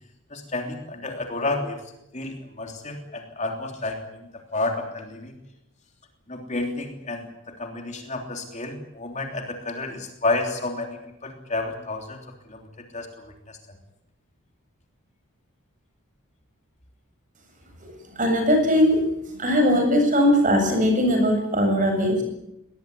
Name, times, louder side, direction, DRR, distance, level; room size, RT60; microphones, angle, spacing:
voice 1, 0.3-1.8 2.1-5.4 6.3-7.3 7.6-12.2 12.5-12.7 12.9-13.1 13.5-13.6, left 2 dB, 30° left, 3 dB, 3.3 m, -30 dB
voice 2, 18.1-19.0 19.4-22.2, equal, 35° right, 4 dB, 7.8 m, -20 dB
23.0 x 19.0 x 9.6 m, 0.86 s
head